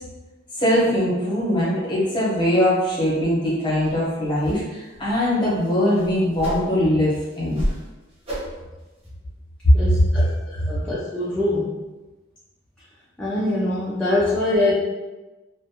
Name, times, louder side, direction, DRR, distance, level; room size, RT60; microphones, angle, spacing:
voice 1, 0.6-7.6 9.6-9.7 10.5-10.6, left 1 dB, 20° left, -7 dB, 0.8 m, -21 dB
sound 1, 3.8-4.0 4.4-4.6 4.9-5.2 5.6-6.9 7.3-7.9 8.2-8.6 9.0-9.1, equal, 30° right, 0.8 m, -30 dB
voice 2, 9.7-10.3 10.7-11.8 13.2-14.7, left 1 dB, 5° left, -9 dB, 0.3 m, -23 dB
2.5 x 2.1 x 2.8 m, 1.1 s
head